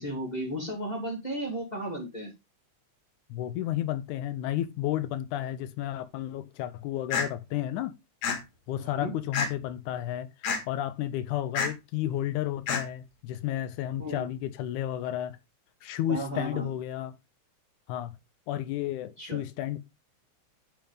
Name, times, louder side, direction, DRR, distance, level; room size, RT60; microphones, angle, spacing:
voice 1, 0.0-2.3 8.8-9.1 14.0-14.3 16.1-16.7 19.2-19.4, right 1 dB, 15° left, 2.0 m, -34 dB
voice 2, 3.3-8.0 8.7-15.4 15.8-17.2 17.9-18.2 18.5-19.8, left 12 dB, 90° left, 2.1 m, -32 dB
sound 1, 7.1-7.3 8.2-8.4 9.3-9.7 10.4-10.6 11.6-11.7 12.7-12.8, left 5 dB, 70° left, 2.6 m, -27 dB
10.5 x 4.5 x 3.5 m
omnidirectional pair, 3.5 m